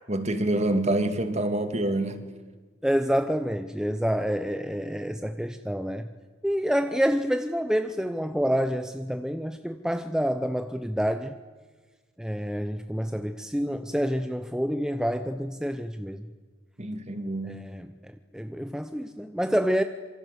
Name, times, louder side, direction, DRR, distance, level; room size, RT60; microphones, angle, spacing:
voice 1, 0.1-2.3 16.8-17.7, right 1 dB, 35° right, 9 dB, 2.3 m, -27 dB
voice 2, 2.8-6.1 6.4-11.3 12.2-16.3 17.4-17.9 18.3-19.8, equal, 5° right, 8 dB, 0.8 m, -28 dB
27.0 x 25.0 x 8.3 m, 1.4 s
head